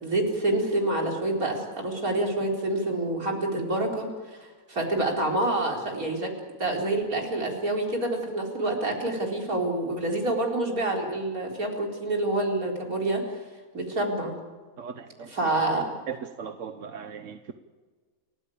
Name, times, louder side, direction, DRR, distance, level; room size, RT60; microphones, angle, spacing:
voice 1, 0.0-6.3 6.6-13.2 13.7-14.3 15.3-15.9, right 2 dB, 80° right, 0 dB, 4.7 m, -27 dB
voice 2, 14.8-15.6 16.1-17.5, right 7 dB, 65° right, 8 dB, 1.3 m, -38 dB
29.5 x 15.0 x 8.6 m, 1.4 s
omnidirectional pair, 1.5 m